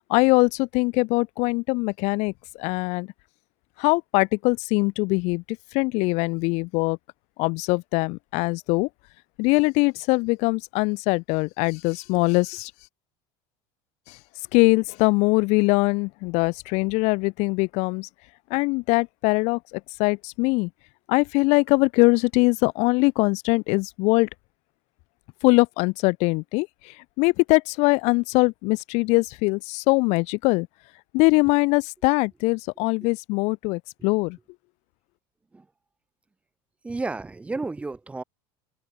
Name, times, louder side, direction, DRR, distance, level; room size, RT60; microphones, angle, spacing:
voice 1, 0.1-3.1 3.8-7.0 7.4-8.9 9.4-12.7 14.1-14.2 14.5-18.1 18.5-20.7 21.1-24.3 25.4-30.7 31.1-34.4, left 27 dB, 55° left, 1.1 m, -22 dB
voice 2, 36.8-38.2, right 3 dB, 10° right, 1.3 m, -32 dB
open air
cardioid pair, 160°, 14 cm